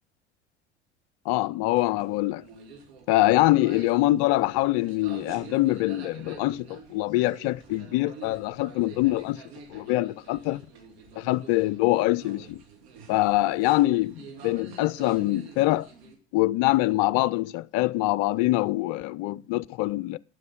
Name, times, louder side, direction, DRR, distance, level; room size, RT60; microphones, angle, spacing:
voice 1, 1.3-2.4 3.1-9.4 9.7-10.6 11.2-12.6 13.1-15.9 16.3-20.2, left 17 dB, 45° left, 0.5 m, -24 dB
sound 1, 1.7-16.2, right 5 dB, 65° right, 2.5 m, -47 dB
12.0 x 6.4 x 8.1 m
figure-of-eight pair, 65°, 34 cm